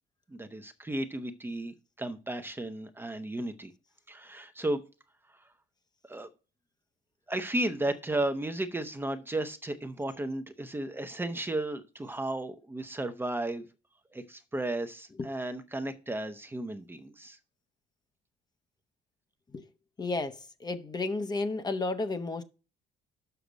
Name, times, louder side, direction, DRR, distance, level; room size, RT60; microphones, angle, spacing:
voice 1, 0.3-3.7 4.1-4.8 6.1-6.3 7.3-13.7 14.1-17.4, right 1 dB, 15° right, 0.8 m, -34 dB
voice 2, 20.0-22.4, left 3 dB, 25° left, 0.9 m, -32 dB
6.8 x 5.9 x 5.1 m
cardioid pair, 110°, 17 cm